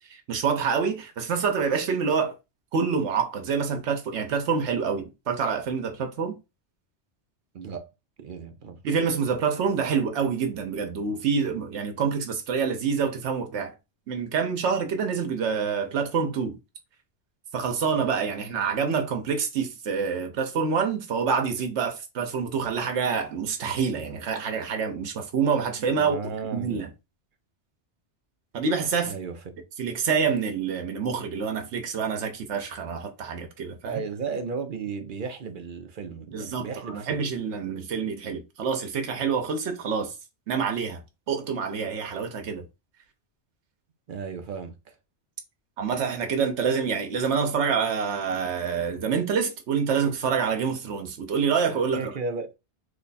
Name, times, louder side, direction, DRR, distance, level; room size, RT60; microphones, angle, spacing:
voice 1, 0.0-2.4 2.7-6.4 8.8-13.7 14.1-16.6 17.5-26.9 28.5-29.2 29.8-34.0 36.3-40.1 40.5-41.0 41.3-42.7 45.8-52.1, right 6 dB, 85° right, 1.0 m, -27 dB
voice 2, 7.5-7.9 8.2-8.8 26.0-26.9 29.0-29.4 33.8-37.1 44.1-45.0 52.0-52.5, right 5 dB, 55° right, 0.7 m, -34 dB
3.1 x 2.3 x 4.0 m
omnidirectional pair, 1.2 m